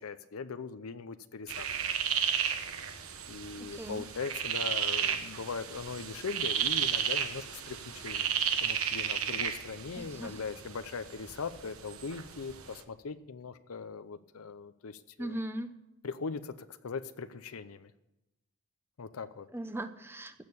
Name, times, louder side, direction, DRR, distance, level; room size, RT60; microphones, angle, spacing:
voice 1, 0.0-1.7 3.3-15.4 16.0-17.9 19.0-19.5, left 5 dB, 85° left, 11 dB, 0.6 m, -40 dB
sound 1, 1.5-12.8, right 8 dB, 90° right, 1.1 m, -33 dB
voice 2, 10.0-10.4 15.2-15.7 19.5-20.3, right 1 dB, 10° right, 9 dB, 0.8 m, -38 dB
15.5 x 6.5 x 8.5 m, 0.93 s
head